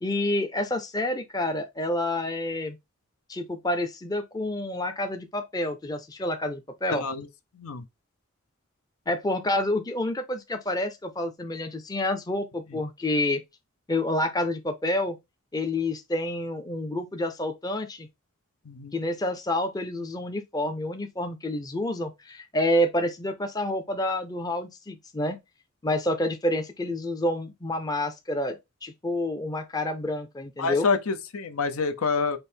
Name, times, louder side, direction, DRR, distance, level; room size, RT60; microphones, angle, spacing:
voice 1, 0.0-2.8 3.3-7.1 9.1-13.4 13.9-15.2 15.5-18.1 18.9-25.4 25.8-30.9, left 1 dB, 15° left, 0.5 m, -28 dB
voice 2, 6.9-7.3 7.6-7.8 18.7-19.0 30.6-32.4, left 4 dB, 85° left, 0.7 m, -27 dB
5.2 x 2.1 x 4.3 m
head